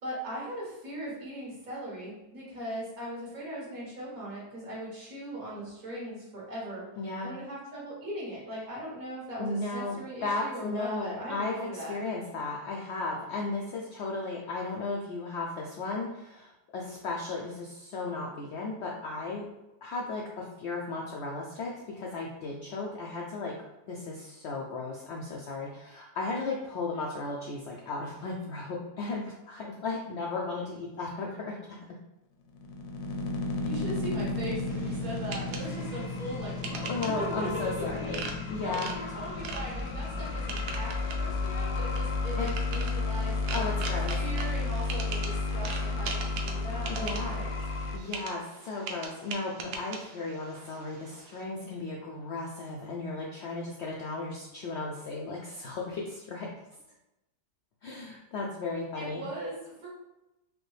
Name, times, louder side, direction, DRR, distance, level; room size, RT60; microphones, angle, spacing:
voice 1, 0.0-6.8 7.2-12.0 33.6-36.9 37.2-43.7 44.2-47.5 59.0-59.9, right 1 dB, 60° right, -5 dB, 2.0 m, -39 dB
voice 2, 7.0-7.3 9.4-19.4 19.8-23.5 23.9-31.5 36.9-38.2 38.5-38.9 42.4-42.5 43.5-44.2 46.9-47.4 47.9-56.5 57.8-59.2, left 3 dB, 90° left, -2 dB, 0.6 m, -35 dB
sound 1, 32.5-48.0, left 3 dB, 70° left, 1.0 m, -32 dB
sound 2, 34.7-51.4, right 4 dB, 75° right, 1.2 m, -42 dB
5.0 x 2.1 x 3.2 m, 0.94 s
omnidirectional pair, 1.8 m